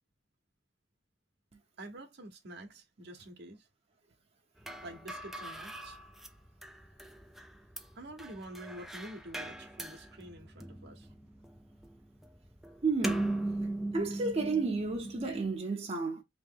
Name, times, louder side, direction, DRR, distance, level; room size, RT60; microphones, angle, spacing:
voice 1, 1.8-3.6 4.8-6.0 8.0-11.1, right 1 dB, 65° right, 1.0 m, -47 dB
sound 1, 4.6-15.6, right 2 dB, ahead, 0.4 m, -39 dB
voice 2, 12.8-13.3 13.9-16.2, right 3 dB, 35° right, 0.8 m, -32 dB
3.2 x 3.0 x 3.6 m
head